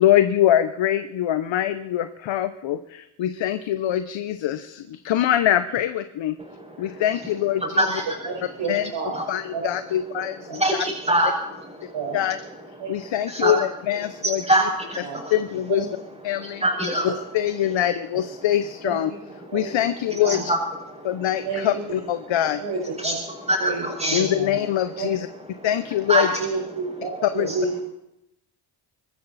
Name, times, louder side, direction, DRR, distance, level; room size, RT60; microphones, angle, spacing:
voice 1, 0.0-6.3 6.8-7.8 8.7-8.9 9.3-10.3 12.1-12.4 12.9-14.4 15.3-15.9 16.2-16.6 17.0-19.1 19.5-20.4 21.0-22.6 24.1-25.3 25.6-26.3 27.4-27.5, left 11 dB, 70° left, 10 dB, 1.0 m, -23 dB
voice 2, 6.4-7.0 7.8-8.1 9.1-9.3 10.5-12.0 12.8-13.5 14.2-15.3 16.3-17.1 19.4-19.8 20.1-20.6 20.9-21.3 23.0-23.1 23.5-24.3 25.6-25.7 26.1-26.4 27.5-27.6, right 1 dB, 15° right, -5 dB, 5.9 m, -25 dB
voice 3, 8.2-9.2 9.5-9.6 10.5-10.6 11.9-12.2 12.8-12.9 13.4-13.5 13.9-14.0 15.0-15.2 15.7-15.9 17.1-17.2 18.8-19.2 19.5-19.7 20.2-20.4 21.4-21.8 22.3-23.2 23.6-24.6 24.9-25.1 26.4-27.8, right 4 dB, 65° right, -1 dB, 5.0 m, -30 dB
24.5 x 14.0 x 4.2 m, 0.87 s
cardioid pair, 70°, 48 cm